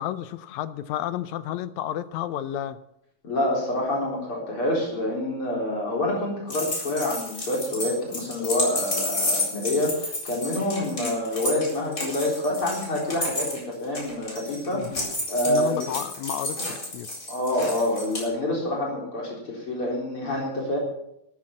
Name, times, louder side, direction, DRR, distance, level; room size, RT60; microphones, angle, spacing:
voice 1, 0.0-2.8 14.7-15.0 15.5-17.1, left 11 dB, 75° left, 13 dB, 1.9 m, -31 dB
voice 2, 3.2-15.9 17.3-20.8, left 1 dB, 45° left, -3 dB, 4.6 m, -27 dB
sound 1, 6.5-18.2, left 1 dB, 25° left, 4.5 m, -31 dB
13.5 x 10.0 x 7.5 m, 0.79 s
omnidirectional pair, 3.5 m